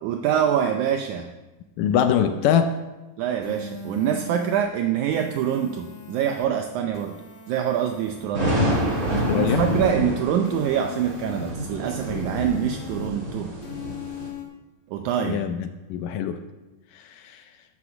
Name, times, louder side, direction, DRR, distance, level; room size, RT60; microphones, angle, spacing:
voice 1, 0.0-1.3 3.2-7.2 7.5-8.6 9.3-13.5 14.9-15.4, right 9 dB, 80° right, 5 dB, 1.8 m, -25 dB
voice 2, 1.8-2.7 9.3-9.7 15.2-16.4 16.9-17.4, left 8 dB, 75° left, 8 dB, 2.1 m, -23 dB
sound 1, 3.4-4.6 5.1-6.5 6.9-8.3 8.7-9.9 10.4-11.5 12.0-13.1 13.6-14.4, left 6 dB, 60° left, 3.0 m, -39 dB
sound 2, 8.3-14.3, equal, 25° right, 3.8 m, -27 dB
12.0 x 6.5 x 7.0 m, 1.1 s
omnidirectional pair, 4.1 m